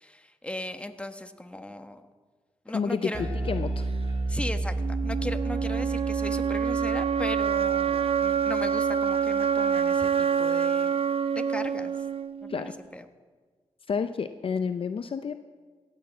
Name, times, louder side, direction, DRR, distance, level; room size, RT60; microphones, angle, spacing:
voice 1, 0.0-2.0 2.6-3.3 4.3-11.0 11.3-11.9 12.4-13.0, left 1 dB, 10° left, 7 dB, 1.2 m, -37 dB
voice 2, 2.7-3.8 12.5-12.7 13.9-15.3, left 6 dB, 55° left, 10 dB, 0.5 m, -30 dB
Bass guitar, 3.1-9.6, right 2 dB, 30° right, 2.8 m, -32 dB
sound 1, 4.8-12.8, right 7 dB, 60° right, 0.5 m, -26 dB
17.0 x 6.4 x 7.5 m, 1.5 s
supercardioid pair, 45°, 11 cm